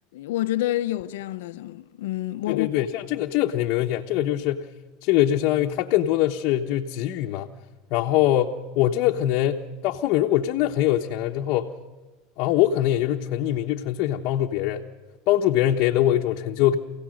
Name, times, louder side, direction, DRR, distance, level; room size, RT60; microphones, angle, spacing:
voice 1, 0.1-2.7, left 14 dB, 85° left, 0.8 m, -28 dB
voice 2, 2.5-4.7 5.0-7.5 7.9-11.7 12.4-14.8 15.3-16.8, left 12 dB, 60° left, 1.1 m, -23 dB
28.0 x 17.0 x 6.5 m
supercardioid pair, 115°, 0 cm